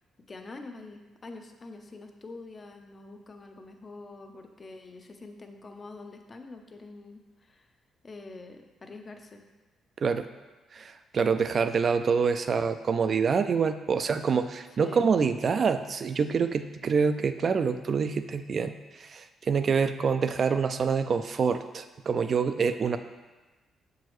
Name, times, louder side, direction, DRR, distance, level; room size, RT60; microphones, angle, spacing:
voice 1, 0.3-7.7 8.0-9.4 14.8-15.1, left 3 dB, 35° left, 5 dB, 0.6 m, -45 dB
voice 2, 10.7-23.0, right 5 dB, 45° right, 10 dB, 0.4 m, -26 dB
6.8 x 4.7 x 3.1 m, 1.2 s
cardioid pair, 90°, 0 cm